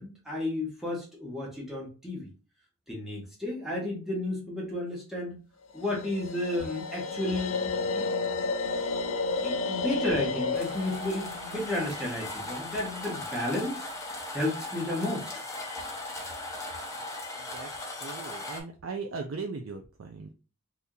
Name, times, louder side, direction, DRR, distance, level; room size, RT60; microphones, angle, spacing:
voice 1, 0.0-2.3 2.9-5.4 5.7-8.1 9.4-13.9 14.3-15.3, left 1 dB, ahead, -4 dB, 1.1 m, -32 dB
sound 1, 5.8-12.9, left 4 dB, 70° left, 0.6 m, -32 dB
sound 2, 10.5-18.6, left 2 dB, 15° left, 0.7 m, -38 dB
voice 2, 17.4-20.3, right 4 dB, 65° right, 3 dB, 0.4 m, -39 dB
2.8 x 2.6 x 3.7 m, 0.33 s
head